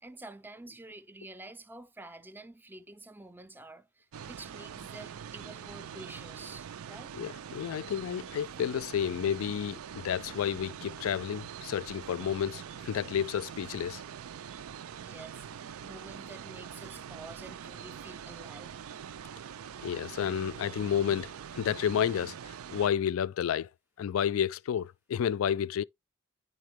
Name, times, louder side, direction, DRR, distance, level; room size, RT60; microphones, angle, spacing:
voice 1, 0.0-7.1 15.0-18.7, right 2 dB, 10° right, 0.5 m, -49 dB
sound 1, 4.1-22.9, right 8 dB, 90° right, 0.4 m, -44 dB
voice 2, 7.1-14.0 19.8-23.7 24.0-25.8, left 9 dB, 75° left, 0.3 m, -31 dB
9.4 x 4.1 x 3.0 m
head